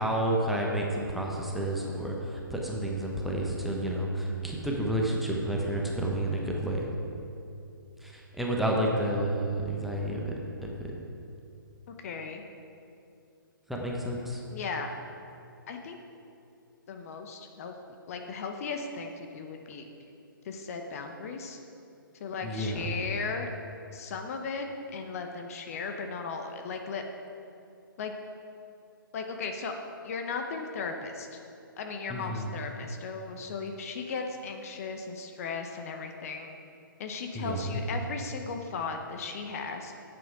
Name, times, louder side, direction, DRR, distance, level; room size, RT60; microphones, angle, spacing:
voice 1, 0.0-6.9 8.0-10.3 10.6-10.7 13.7-14.4 22.4-22.9 32.1-32.5 37.3-37.8, right 1 dB, ahead, -2 dB, 0.9 m, -30 dB
voice 2, 11.9-12.4 14.5-14.9 15.7-16.0 16.9-17.7 18.1-19.9 20.4-21.6 22.2-23.5 23.9-27.0 28.0-28.1 29.1-29.7 30.0-31.4 31.8-36.5 37.0-39.9, left 4 dB, 40° left, 4 dB, 0.8 m, -36 dB
9.2 x 7.8 x 4.7 m, 2.7 s
figure-of-eight pair, 135°, 12 cm